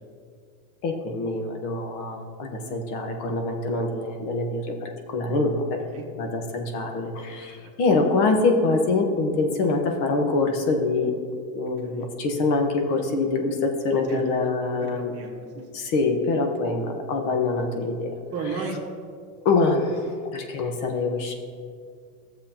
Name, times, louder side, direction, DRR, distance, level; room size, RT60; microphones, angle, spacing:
voice 1, 0.8-5.8 6.2-11.1 11.5-15.1 15.7-18.1 19.4-21.4, left 3 dB, 60° left, 4 dB, 1.3 m, -25 dB
voice 2, 14.9-15.9 18.3-18.8, right 5 dB, 35° right, -2 dB, 1.3 m, -34 dB
13.5 x 7.3 x 2.9 m, 2.1 s
supercardioid pair, 140°, 42 cm